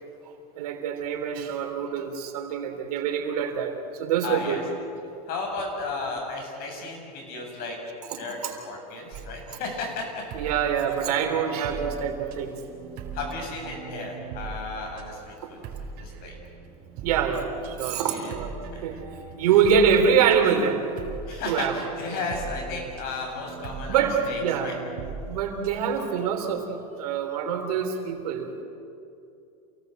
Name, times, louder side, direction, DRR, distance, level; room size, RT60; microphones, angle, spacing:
voice 1, 0.6-4.6 8.1-8.5 10.3-12.5 15.4-15.5 17.0-18.5 18.8-19.0 19.4-20.8 21.5-21.8 23.9-24.8 25.3-28.6, right 7 dB, 85° right, 4 dB, 3.6 m, -25 dB
voice 2, 4.2-4.6 5.3-7.8 8.1-10.2 13.1-15.6 16.0-16.3 17.9-18.3 18.7-18.9 21.3-24.7, left 3 dB, 50° left, 1 dB, 7.8 m, -34 dB
sound 1, 9.1-26.0, right 5 dB, 50° right, 4.0 m, -40 dB
28.0 x 18.5 x 8.0 m, 2.6 s
supercardioid pair, 125°, 19 cm